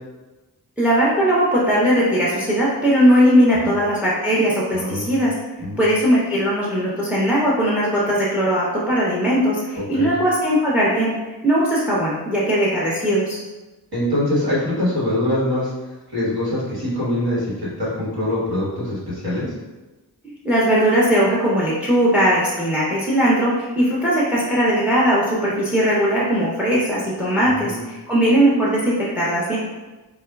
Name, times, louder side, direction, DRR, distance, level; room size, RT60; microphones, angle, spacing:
voice 1, 0.8-5.3 5.8-11.1 11.4-13.4 20.2-29.6, equal, 5° right, -5 dB, 0.6 m, -19 dB
voice 2, 4.7-5.1 5.6-5.8 9.8-10.1 13.9-15.7 16.1-19.5 27.6-27.8, left 1 dB, 60° right, -7 dB, 1.4 m, -23 dB
4.1 x 2.3 x 2.3 m, 1.1 s
wide cardioid pair, 85°, 41 cm